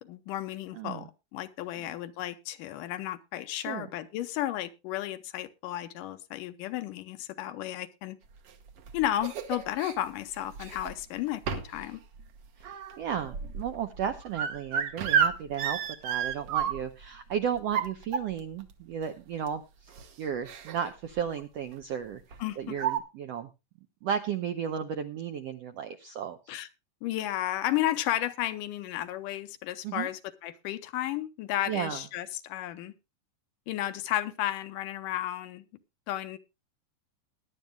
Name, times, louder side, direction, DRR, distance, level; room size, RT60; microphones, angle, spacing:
voice 1, 0.0-8.2 8.9-12.0 22.4-22.8 26.5-26.7 27.0-32.9 33.7-35.7 36.1-36.4, left 13 dB, 80° left, 10 dB, 2.4 m, -33 dB
voice 2, 0.7-1.1 3.5-3.9 12.6-19.9 20.2-22.2 22.6-23.5 24.0-26.4 29.8-30.1 31.7-32.0, right 8 dB, 75° right, 8 dB, 1.4 m, -34 dB
sound 1, 8.5-9.9 10.5-11.0 11.5-11.8 12.2-17.0 17.6-18.6 19.5-19.6 19.9-20.1 20.4-20.9 21.2-21.4 22.3-22.4 22.7-23.0, right 8 dB, 60° right, 1.8 m, -31 dB
20.0 x 10.5 x 2.2 m, 0.25 s
omnidirectional pair, 3.8 m